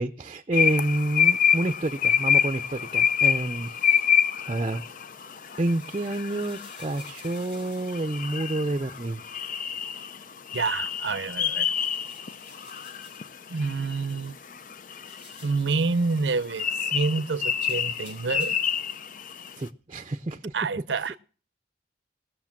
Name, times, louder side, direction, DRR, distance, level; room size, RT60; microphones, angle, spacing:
voice 1, 0.0-4.0 4.4-4.8 5.6-9.2 19.6-20.5, right 2 dB, 30° right, 0.6 m, -29 dB
sound 1, 0.5-19.5, left 8 dB, 50° left, 0.5 m, -27 dB
sound 2, 5.2-9.2 11.5-13.4 14.8-15.7 17.6-18.8, left 2 dB, 85° left, 5.9 m, -53 dB
voice 2, 10.5-11.7 13.5-14.4 15.4-16.7 16.9-18.6 20.5-21.2, right 4 dB, 85° right, 0.7 m, -27 dB
19.0 x 6.6 x 5.9 m
head